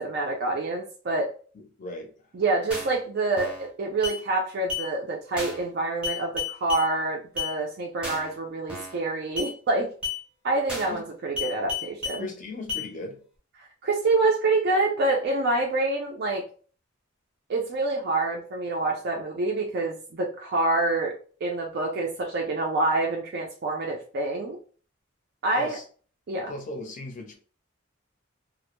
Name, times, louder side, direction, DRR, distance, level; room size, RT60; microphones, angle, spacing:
voice 1, 0.0-1.3 2.3-3.5 3.8-9.9 10.4-12.3 13.8-16.5 17.5-21.1 21.4-24.6 25.4-25.8 26.3-26.5, right 2 dB, 50° right, 0.4 m, -26 dB
voice 2, 1.5-2.1 10.9-11.0 12.2-13.2 25.6-25.8 26.5-27.3, left 2 dB, 40° left, 0.5 m, -37 dB
sound 1, 2.7-3.0 3.4-3.7 4.0-4.2 4.7-4.9 5.4-5.7 6.0-6.9 7.4-7.5 8.0-8.3 8.7-9.0 9.4-9.5 10.0-10.2 10.7-11.0 11.4-12.2 12.7-12.9, left 5 dB, 5° right, 0.7 m, -32 dB
2.1 x 2.0 x 2.9 m
head